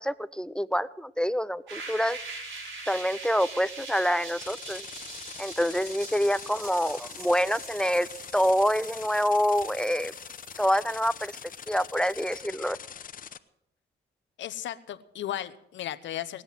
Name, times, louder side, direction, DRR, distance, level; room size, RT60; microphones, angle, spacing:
voice 1, 0.0-2.2 2.9-4.9 5.4-10.1 10.6-11.4 11.7-12.8, equal, 5° left, 16 dB, 0.5 m, -26 dB
sound 1, 1.7-12.4, right 3 dB, 70° right, 4.7 m, -43 dB
sound 2, 4.4-13.4, left 8 dB, 45° left, 0.8 m, -43 dB
voice 2, 14.4-16.4, left 12 dB, 70° left, 11 dB, 0.9 m, -35 dB
19.0 x 7.8 x 7.7 m, 0.78 s
cardioid pair, 90°, 20 cm